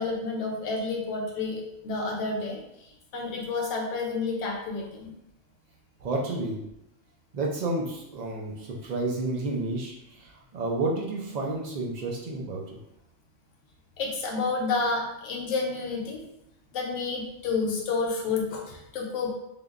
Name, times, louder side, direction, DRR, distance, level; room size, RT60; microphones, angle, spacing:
voice 1, 0.0-5.1 14.0-16.2 16.7-19.4, left 4 dB, 80° left, 0 dB, 1.0 m, -30 dB
voice 2, 6.0-6.6 7.3-12.8, right 2 dB, 70° right, -1 dB, 0.4 m, -31 dB
3.3 x 2.2 x 2.4 m, 0.85 s
omnidirectional pair, 1.3 m